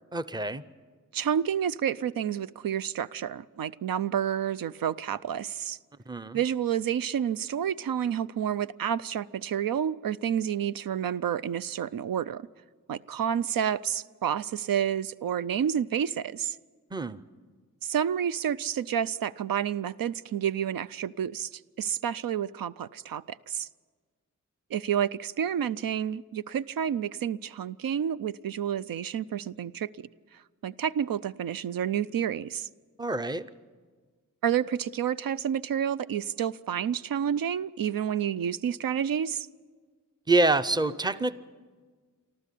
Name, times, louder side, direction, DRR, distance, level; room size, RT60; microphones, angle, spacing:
voice 1, 0.1-0.6 6.1-6.4 16.9-17.2 33.0-33.5 40.3-41.3, right 2 dB, 15° right, 13 dB, 0.6 m, -26 dB
voice 2, 1.1-5.8 6.3-12.4 12.9-16.6 17.8-23.7 24.7-30.1 30.6-32.7 34.4-39.5, right 9 dB, 90° right, 16 dB, 0.5 m, -29 dB
25.0 x 14.0 x 8.4 m, 1.5 s
wide cardioid pair, 105°, 33 cm